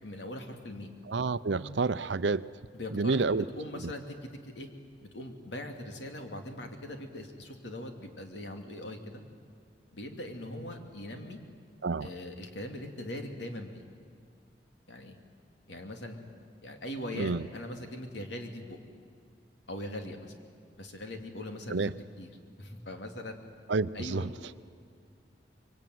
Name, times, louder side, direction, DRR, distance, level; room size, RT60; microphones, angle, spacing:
voice 1, 0.0-0.9 2.7-4.2 4.4-4.7 5.1-9.2 9.9-11.4 12.0-13.8 14.9-15.2 15.7-16.2 16.6-18.8 19.7-20.3 20.8-22.3 22.6-23.4 23.9-24.3, left 1 dB, 80° left, 4 dB, 2.8 m, -41 dB
voice 2, 1.1-2.5 2.9-3.5 3.7-3.9 11.8-12.1 17.1-17.5 21.7-21.9 23.7-24.3, right 4 dB, 80° right, 15 dB, 0.6 m, -29 dB
25.0 x 23.0 x 9.4 m, 2.2 s
head